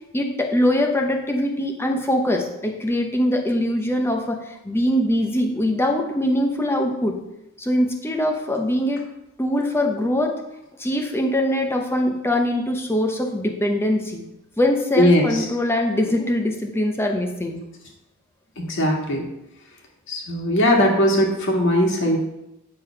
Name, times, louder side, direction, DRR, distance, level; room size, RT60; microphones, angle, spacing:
voice 1, 0.1-7.2 7.6-9.0 9.4-10.4 10.8-14.2 14.6-17.6, left 1 dB, 10° left, 2 dB, 0.8 m, -22 dB
voice 2, 15.0-15.4 18.6-19.3 20.1-22.2, left 1 dB, 55° left, 0 dB, 1.7 m, -19 dB
9.2 x 3.6 x 5.7 m, 0.88 s
head